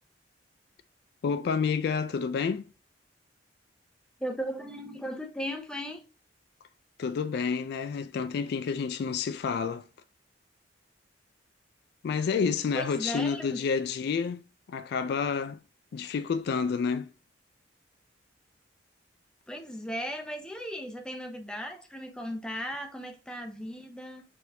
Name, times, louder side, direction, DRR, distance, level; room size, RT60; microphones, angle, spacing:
voice 1, 1.2-2.6 7.0-9.8 12.0-15.6 15.9-17.1, left 6 dB, 60° left, 0.3 m, -29 dB
voice 2, 4.2-6.0 12.7-13.6 19.5-24.2, equal, 5° left, 0.7 m, -36 dB
4.3 x 3.7 x 2.7 m
head